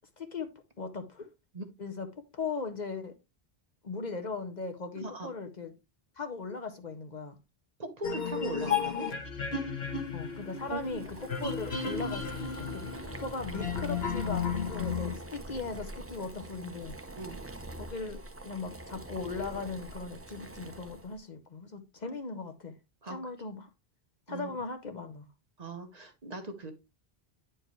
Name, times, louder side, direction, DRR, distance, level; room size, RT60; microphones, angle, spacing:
voice 1, 0.2-0.5 0.8-1.3 1.8-2.1 2.3-3.1 3.8-5.7 6.2-7.4 10.1-12.9 13.2-17.0 17.8-22.7 23.1-23.7 24.3-25.3, left 4 dB, 50° left, 0.9 m, -38 dB
voice 2, 7.8-9.1 10.7-11.0 17.1-17.4 22.0-22.1 23.0-23.2 24.3-24.5 25.6-26.7, right 2 dB, 40° right, 1.0 m, -39 dB
sound 1, 8.0-15.2, left 6 dB, 80° left, 1.5 m, -34 dB
Boiling, 9.9-21.2, right 1 dB, 15° right, 0.5 m, -44 dB
9.3 x 4.6 x 3.0 m
omnidirectional pair, 1.0 m